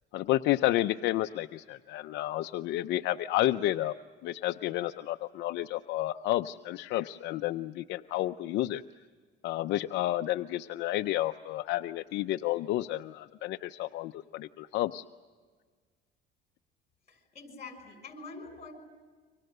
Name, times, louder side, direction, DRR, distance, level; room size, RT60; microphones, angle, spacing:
voice 1, 0.1-3.9 4.2-8.8 9.4-15.0, left 15 dB, 65° left, 8 dB, 0.7 m, -31 dB
voice 2, 17.1-18.7, left 3 dB, 35° left, 8 dB, 6.1 m, -45 dB
29.5 x 25.0 x 6.7 m, 1.5 s
cardioid pair, 125°, 20 cm